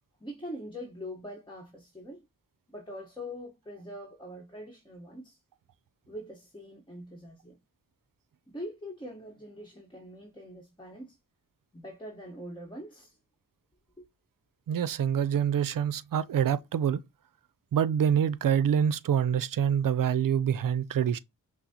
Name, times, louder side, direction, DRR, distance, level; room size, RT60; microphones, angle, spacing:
voice 1, 0.2-2.2 2.7-5.4 6.1-7.6 8.5-11.2 11.7-13.2 14.0-14.1, equal, 15° left, 1.1 m, -43 dB
voice 2, 14.7-17.0 17.7-21.2, right 8 dB, 70° right, 0.5 m, -26 dB
5.9 x 2.0 x 2.8 m
cardioid pair, 50°, 35 cm